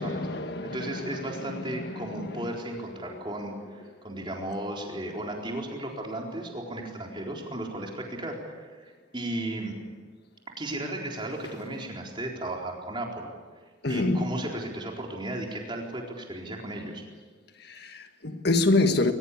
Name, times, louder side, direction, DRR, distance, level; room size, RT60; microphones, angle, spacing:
voice 1, 0.0-1.2 1.5-2.4 13.8-14.3 17.7-19.1, left 2 dB, 55° left, 1.6 m, -27 dB
voice 2, 0.6-9.7 10.6-13.3 13.9-17.0, right 1 dB, 25° right, 4.2 m, -35 dB
22.0 x 21.0 x 8.5 m
head